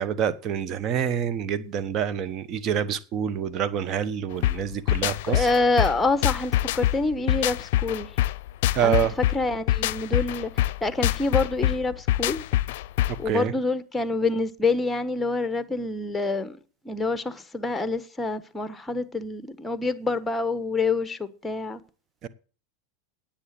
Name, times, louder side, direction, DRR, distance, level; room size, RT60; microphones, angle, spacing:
voice 1, 0.0-5.5 8.7-9.2 13.2-13.5 22.2-22.3, right 8 dB, 40° right, 1.2 m, -27 dB
sound 1, 4.4-13.3, left 14 dB, 65° left, 0.5 m, -25 dB
voice 2, 5.2-8.1 8.8-12.4 13.2-16.6 16.8-21.8, left 3 dB, 10° left, 1.2 m, -27 dB
9.9 x 8.6 x 7.6 m
hypercardioid pair, 105°, 0 cm